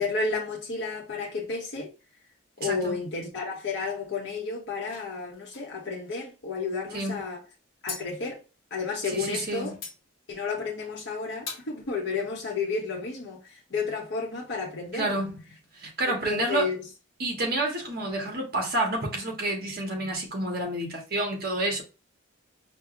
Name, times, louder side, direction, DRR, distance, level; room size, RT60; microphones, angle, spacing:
voice 1, 0.0-1.9 2.6-7.4 7.8-8.4 8.7-9.7 10.3-15.2 16.1-16.8, left 4 dB, 55° left, 0.7 m, -32 dB
voice 2, 2.6-3.0 6.9-7.2 9.1-9.8 14.9-15.4 15.7-16.7 17.2-21.8, right 2 dB, 45° right, 1.0 m, -29 dB
sound 1, 4.8-6.3 7.9-8.1 9.7-10.0 10.8-11.0 11.5-11.7, left 5 dB, 75° left, 1.0 m, -41 dB
4.5 x 2.0 x 2.4 m
head